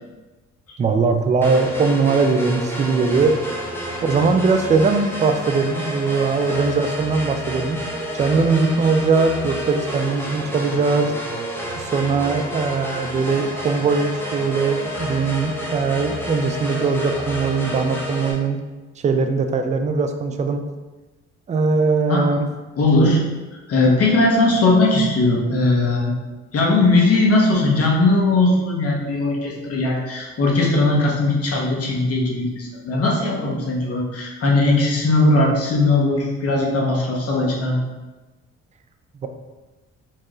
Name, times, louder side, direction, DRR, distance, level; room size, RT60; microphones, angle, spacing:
voice 1, 0.8-3.4 4.0-7.9 8.2-11.1 11.8-18.6 19.0-20.6 21.5-22.5 39.2-39.3, right 4 dB, 25° right, 6 dB, 0.3 m, -20 dB
sound 1, 1.4-18.3, equal, 5° left, 0.7 m, -30 dB
voice 2, 22.8-23.2 23.7-26.1 26.5-37.8, left 2 dB, 50° left, -2 dB, 1.0 m, -18 dB
4.5 x 2.4 x 3.0 m, 1.2 s
cardioid pair, 90°, 30 cm